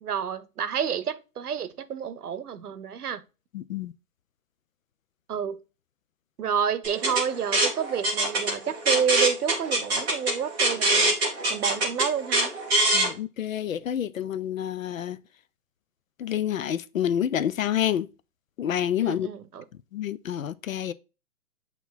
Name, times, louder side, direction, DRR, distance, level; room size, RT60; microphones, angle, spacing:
voice 1, 0.0-3.2 5.3-5.6 6.4-12.5 19.0-19.6, right 7 dB, 75° right, 0.9 m, -29 dB
voice 2, 3.5-3.9 12.9-15.2 16.2-18.1 18.6-19.3 19.9-20.9, left 10 dB, 60° left, 0.6 m, -28 dB
sound 1, 6.8-13.1, right 2 dB, 5° right, 0.5 m, -24 dB
8.2 x 3.0 x 3.9 m
hypercardioid pair, 150°, 46 cm